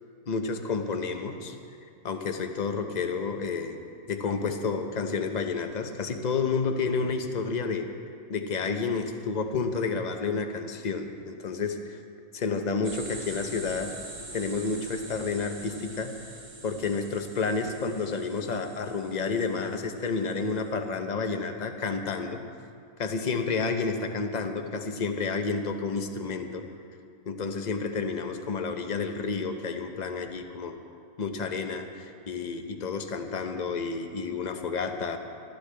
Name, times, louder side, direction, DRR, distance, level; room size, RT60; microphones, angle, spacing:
voice 1, 0.3-1.5 2.0-3.8 4.1-7.9 8.3-12.0 12.3-13.9 14.3-16.3 16.6-22.4 23.0-26.6 27.3-30.8 31.2-35.2, left 4 dB, 35° left, 6 dB, 0.7 m, -30 dB
sound 1, 12.8-20.6, right 2 dB, 50° right, 2.4 m, -44 dB
19.5 x 13.5 x 3.4 m, 2.4 s
omnidirectional pair, 1.6 m